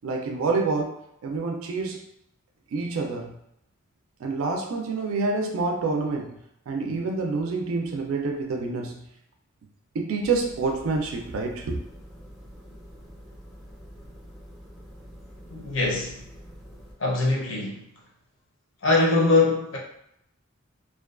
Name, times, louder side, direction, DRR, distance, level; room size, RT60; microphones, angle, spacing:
voice 1, 0.0-1.0 1.2-2.0 2.7-3.3 4.2-6.4 6.7-9.0 9.9-11.8, right 3 dB, 85° right, 2 dB, 0.3 m, -27 dB
sound 1, 10.2-16.9, equal, ahead, 0.5 m, -46 dB
voice 2, 15.5-16.2 17.0-17.8 18.8-19.8, left 3 dB, 65° left, -2 dB, 0.6 m, -22 dB
2.4 x 2.2 x 2.3 m, 0.77 s
head